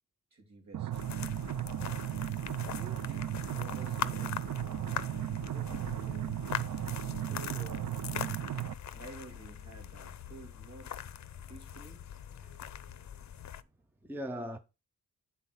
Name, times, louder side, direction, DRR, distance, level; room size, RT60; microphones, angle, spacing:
voice 1, 0.3-1.1 2.7-6.8 7.0-7.9 8.9-11.0 11.5-12.1, right 3 dB, 55° right, 2.7 m, -52 dB
sound 1, 0.7-8.7, right 12 dB, 75° right, 0.5 m, -36 dB
sound 2, 0.9-13.6, left 9 dB, 55° left, 0.6 m, -42 dB
voice 2, 12.4-13.1 14.0-14.6, equal, 5° right, 0.6 m, -42 dB
9.5 x 4.1 x 5.7 m
wide cardioid pair, 150°, 33 cm